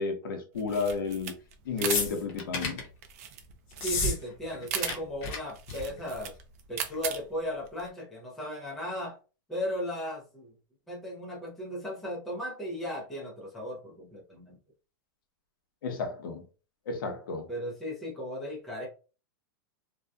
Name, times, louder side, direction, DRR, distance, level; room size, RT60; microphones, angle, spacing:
voice 1, 0.0-1.3 1.7-2.8 15.8-16.4 16.9-17.5, left 4 dB, 75° left, 0.8 m, -32 dB
sound 1, 0.5-7.9, right 8 dB, 45° right, 0.4 m, -38 dB
sound 2, 1.8-2.9 3.7-4.2 4.4-4.9 5.2-5.4 5.7-6.0 6.9-7.0, left 3 dB, 35° left, 0.8 m, -31 dB
voice 2, 3.8-6.3 6.7-9.2 9.5-10.5 10.9-14.6 17.5-18.9, equal, ahead, 0.6 m, -36 dB
2.7 x 2.2 x 2.2 m
supercardioid pair, 165°, 11 cm